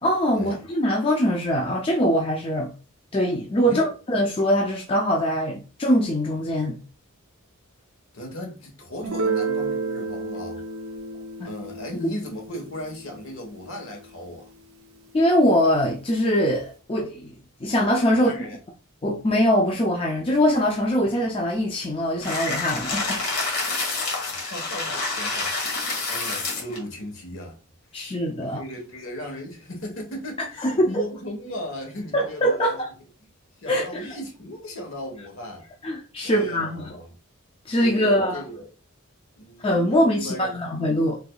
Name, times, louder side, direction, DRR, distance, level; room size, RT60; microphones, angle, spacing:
voice 1, 0.0-2.7 3.1-6.8 11.4-11.5 15.1-17.3 17.6-18.3 19.0-23.2 23.6-23.8 27.9-28.6 30.6-31.0 32.1-32.9 33.7-34.2 35.8-37.0 37.7-38.4 39.6-41.2, equal, 25° left, 0.4 m, -22 dB
voice 2, 8.1-10.6 11.4-14.5 18.1-18.6 24.3-27.5 27.9-32.8 33.6-35.7 36.2-37.1 37.8-38.7 39.4-40.6, left 1 dB, 65° left, 1.2 m, -37 dB
Guitar, 9.0-14.5, right 4 dB, 90° right, 0.6 m, -31 dB
sound 1, 22.2-26.8, left 3 dB, 85° left, 1.3 m, -28 dB
3.4 x 3.3 x 2.3 m
head